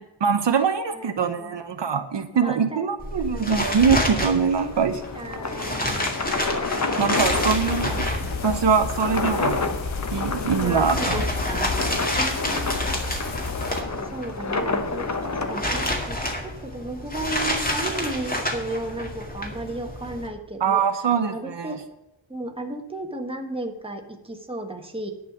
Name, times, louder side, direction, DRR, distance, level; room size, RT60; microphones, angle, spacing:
voice 1, 0.2-5.0 7.0-8.1 8.4-9.6 10.1-11.2 20.6-21.7, right 6 dB, 65° right, 7 dB, 1.0 m, -23 dB
voice 2, 0.9-1.6 2.3-2.8 5.1-6.1 7.6-8.3 10.6-11.7 12.1-13.0 13.6-13.8 14.0-20.8 21.2-21.8 22.3-25.1, right 2 dB, 10° right, 3 dB, 1.4 m, -34 dB
sound 1, 3.0-20.3, left 1 dB, 20° left, 2.1 m, -30 dB
sound 2, 4.6-15.9, left 3 dB, 35° left, 1.1 m, -30 dB
sound 3, 7.2-13.8, left 4 dB, 75° left, 1.4 m, -32 dB
11.0 x 5.6 x 7.9 m, 0.95 s
wide cardioid pair, 130°, 47 cm